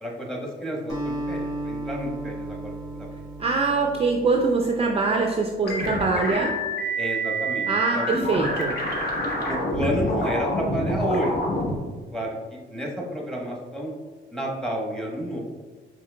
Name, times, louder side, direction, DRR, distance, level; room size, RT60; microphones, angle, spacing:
voice 1, 0.0-3.1 7.0-7.7 7.9-8.1 9.5-11.3 12.1-13.9 14.3-15.4, equal, 5° left, -1 dB, 1.0 m, -30 dB
Acoustic guitar, 0.9-5.4, right 1 dB, 20° left, 1.3 m, -35 dB
voice 2, 3.4-6.5 7.7-8.8, right 4 dB, 30° right, 1 dB, 0.4 m, -23 dB
sound 1, 5.6-11.8, equal, 55° left, 1.0 m, -27 dB
5.5 x 3.2 x 2.2 m, 1.4 s
cardioid pair, 90°, 20 cm